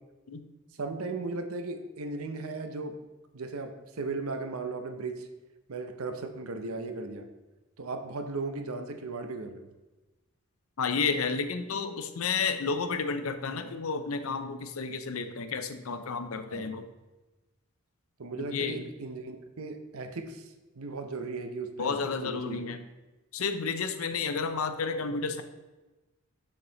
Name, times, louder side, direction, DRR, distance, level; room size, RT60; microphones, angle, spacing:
voice 1, 0.8-3.0 3.3-5.3 5.7-7.3 7.8-9.7 16.5-16.8 18.2-22.6, right 3 dB, 80° right, 7 dB, 0.7 m, -37 dB
voice 2, 10.8-16.8 18.4-18.9 21.8-22.8 23.3-25.4, left 5 dB, 80° left, 9 dB, 0.6 m, -31 dB
7.0 x 5.3 x 4.0 m, 1.1 s
head